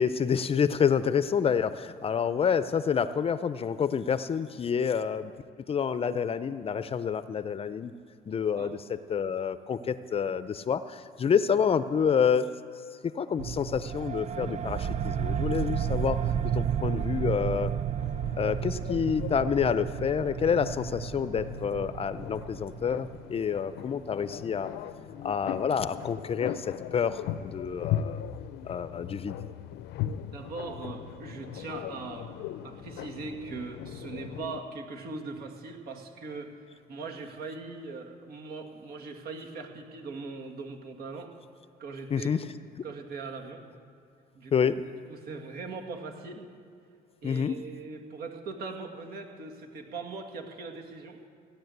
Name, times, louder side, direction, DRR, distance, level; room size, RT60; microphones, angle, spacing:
voice 1, 0.0-5.3 5.7-7.9 8.3-12.5 13.1-16.2 16.4-17.7 18.4-24.7 25.2-28.2 28.6-29.4 42.1-42.4 44.5-44.8 47.2-47.6, left 7 dB, 35° left, 13 dB, 0.6 m, -28 dB
sound 1, 13.4-23.6, right 9 dB, 40° right, 0.5 m, -32 dB
sound 2, 18.0-34.6, left 11 dB, 80° left, 0.6 m, -39 dB
voice 2, 30.3-32.4 32.6-41.3 41.8-42.4 42.8-43.7 44.3-44.5 45.1-46.5 47.2-51.3, right 4 dB, 65° right, 2 dB, 2.2 m, -40 dB
16.5 x 10.0 x 8.0 m, 2.4 s
cardioid pair, 110°, 17 cm